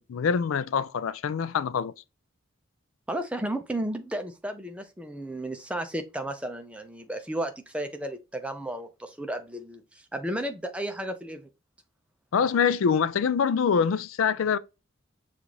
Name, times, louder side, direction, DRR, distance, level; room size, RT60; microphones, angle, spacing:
voice 1, 0.0-1.9 12.3-14.6, left 6 dB, 75° left, 0.4 m, -25 dB
voice 2, 3.1-11.5, right 1 dB, 5° right, 0.5 m, -33 dB
6.7 x 2.5 x 2.9 m
head